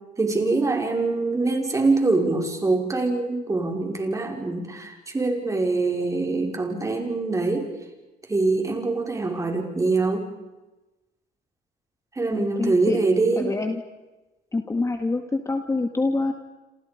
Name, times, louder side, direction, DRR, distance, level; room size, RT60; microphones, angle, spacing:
voice 1, 0.2-7.7 8.3-10.3 12.2-13.5, right 3 dB, 20° right, 2 dB, 5.2 m, -24 dB
voice 2, 12.3-13.0 13.4-13.8 14.5-16.3, left 3 dB, 15° left, 6 dB, 1.9 m, -26 dB
28.0 x 27.5 x 5.2 m, 1.1 s
cardioid pair, 110°, 17 cm